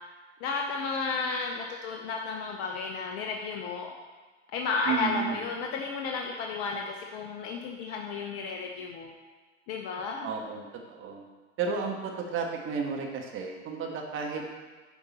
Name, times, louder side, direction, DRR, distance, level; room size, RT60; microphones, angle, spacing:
voice 1, 0.4-3.9 4.5-9.1 9.7-10.3, left 4 dB, 40° left, 1 dB, 0.9 m, -33 dB
voice 2, 4.9-5.4 10.2-11.3 11.6-14.4, right 5 dB, 35° right, 2 dB, 1.4 m, -33 dB
9.4 x 5.2 x 4.2 m, 1.3 s
hypercardioid pair, 90°, 37 cm